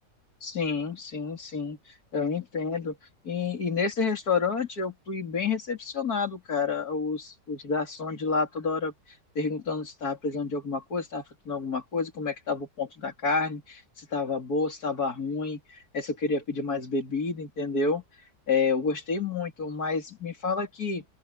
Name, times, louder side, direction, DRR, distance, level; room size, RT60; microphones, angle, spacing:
voice 1, 0.4-1.8 2.1-3.0 3.2-8.9 9.4-15.6 15.9-18.0 18.5-21.0, left 4 dB, 60° left, 3.6 m, -29 dB
open air
omnidirectional pair, 1.9 m